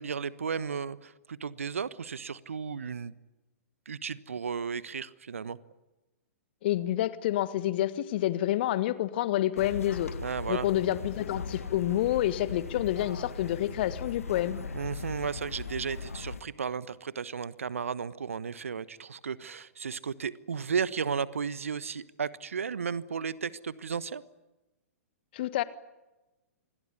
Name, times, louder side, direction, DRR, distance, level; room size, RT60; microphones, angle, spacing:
voice 1, 0.0-3.1 3.8-5.6 10.2-10.7 14.7-24.2, right 6 dB, 65° right, 17 dB, 1.3 m, -34 dB
voice 2, 6.6-10.2 10.5-14.6 25.3-25.6, left 13 dB, 45° left, 15 dB, 1.5 m, -28 dB
sound 1, 9.6-16.4, left 4 dB, 70° left, 1.6 m, -39 dB
27.0 x 21.5 x 9.8 m, 1.1 s
figure-of-eight pair, 110°, 8 cm